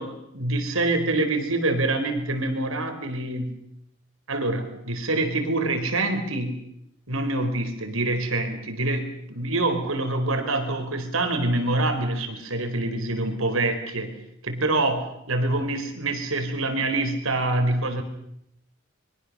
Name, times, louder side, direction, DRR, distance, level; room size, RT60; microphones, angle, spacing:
voice 1, 0.0-3.6 4.3-6.6 7.1-14.2 14.4-18.0, right 2 dB, 70° right, 7 dB, 4.3 m, -26 dB
24.5 x 23.5 x 6.7 m, 0.77 s
head